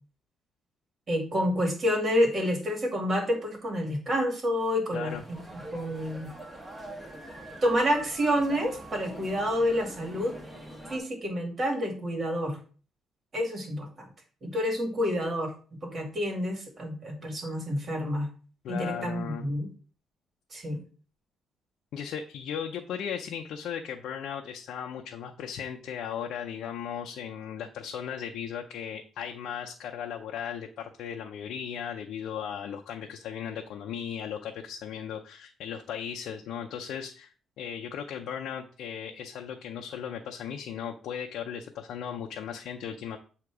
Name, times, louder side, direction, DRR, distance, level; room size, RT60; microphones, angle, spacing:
voice 1, 1.1-6.3 7.6-10.3 10.9-12.6 13.3-14.1 14.4-15.5 15.8-18.3 18.7-19.7 20.5-20.8, equal, 45° right, 2 dB, 2.2 m, -28 dB
sound 1, 5.1-11.0, right 1 dB, 15° right, 1.4 m, -44 dB
voice 2, 18.6-19.4 21.9-43.2, left 8 dB, 80° left, 2 dB, 0.6 m, -37 dB
7.8 x 2.9 x 4.7 m, 0.38 s
cardioid pair, 90°, 0 cm